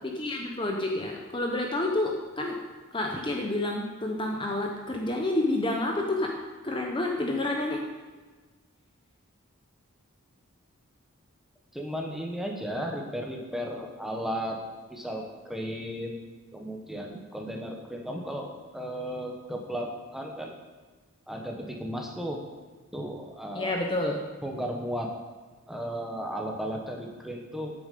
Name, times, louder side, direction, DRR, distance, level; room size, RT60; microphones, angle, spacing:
voice 1, 0.2-2.6 2.9-6.3 6.6-7.8 23.5-24.2, left 2 dB, 20° left, 1 dB, 0.8 m, -29 dB
voice 2, 11.7-14.6 14.9-16.2 16.5-20.5 21.3-22.4 22.9-23.7 24.4-25.1 25.7-27.7, equal, ahead, 1 dB, 1.0 m, -35 dB
8.9 x 7.1 x 6.7 m, 1.3 s
head